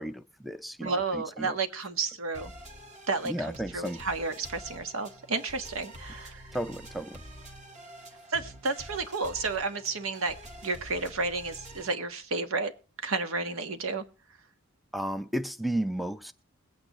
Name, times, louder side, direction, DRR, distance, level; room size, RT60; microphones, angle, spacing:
voice 1, 0.0-1.5 3.3-4.0 6.5-7.2 14.9-16.3, right 1 dB, ahead, 11 dB, 0.5 m, -33 dB
voice 2, 0.8-2.5 3.1-6.6 8.3-10.3 10.6-12.7 13.0-14.0, right 3 dB, 80° right, 8 dB, 1.4 m, -31 dB
sound 1, 2.3-11.9, right 1 dB, 35° right, 1.8 m, -47 dB
21.5 x 8.9 x 3.0 m, 0.37 s
head